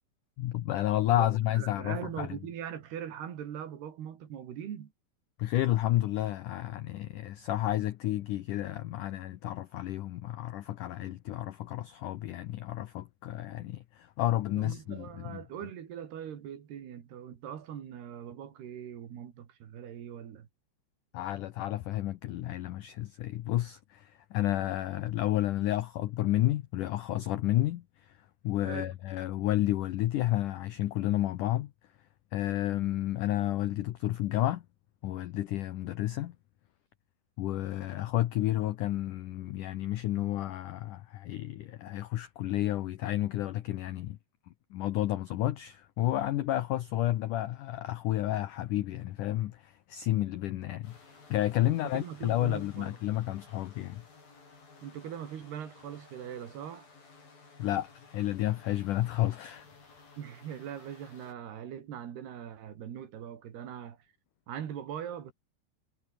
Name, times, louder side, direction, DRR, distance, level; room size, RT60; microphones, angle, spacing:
voice 1, 0.4-2.4 5.4-15.4 21.1-28.2 28.4-31.7 32.3-34.6 35.0-36.4 37.4-44.2 44.7-51.0 51.3-54.0 57.6-59.7, left 14 dB, 85° left, 1.8 m, -31 dB
voice 2, 1.5-4.9 14.6-20.5 28.6-28.9 51.6-53.0 54.8-56.9 60.2-64.0 64.5-65.3, right 9 dB, 70° right, 4.5 m, -41 dB
sound 1, 50.8-61.3, left 4 dB, 55° left, 9.3 m, -56 dB
omnidirectional pair, 5.0 m